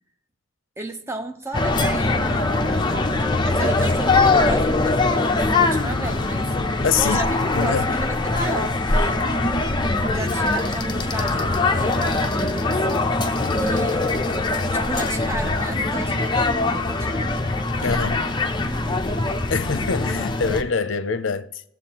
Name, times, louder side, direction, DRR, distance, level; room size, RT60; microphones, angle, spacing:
voice 1, 0.8-9.3 10.1-13.1 13.5-14.2 14.7-17.5 17.8-18.3 18.5-19.1, right 1 dB, 15° right, 0.7 m, -34 dB
sound 1, 1.5-20.6, left 2 dB, 25° left, 0.6 m, -22 dB
voice 2, 6.8-7.8 17.8-18.3 19.5-21.6, left 5 dB, 70° left, 0.6 m, -24 dB
17.5 x 7.5 x 2.9 m
head